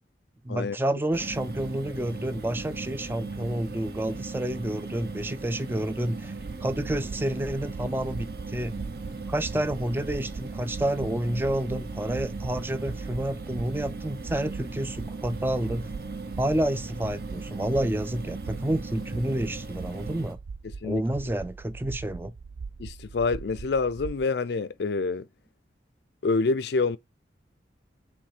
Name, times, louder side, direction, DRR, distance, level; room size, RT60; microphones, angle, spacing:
voice 1, 0.4-6.3 6.6-8.7 9.3-15.9 16.4-20.4 20.8-22.3, right 1 dB, 10° right, 0.4 m, -29 dB
sound 1, 1.1-20.3, right 3 dB, 55° right, 0.8 m, -38 dB
sound 2, 6.4-24.2, right 5 dB, 85° right, 0.4 m, -41 dB
voice 2, 22.8-25.3 26.2-27.0, left 4 dB, 70° left, 0.4 m, -27 dB
7.2 x 3.1 x 4.9 m
head